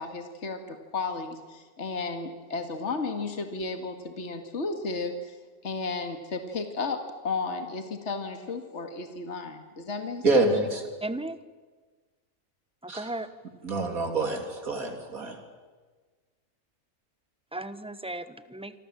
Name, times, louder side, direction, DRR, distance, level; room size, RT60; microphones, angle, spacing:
voice 1, 0.0-5.4 5.6-10.4, left 3 dB, 50° left, 6 dB, 2.3 m, -33 dB
voice 2, 10.2-10.8 12.9-13.1 13.6-15.4, right 2 dB, 75° right, 4 dB, 3.7 m, -26 dB
voice 3, 11.0-11.4 12.8-13.3 17.5-18.7, right 2 dB, 5° right, 12 dB, 1.0 m, -35 dB
27.0 x 26.0 x 7.6 m, 1.4 s
omnidirectional pair, 1.5 m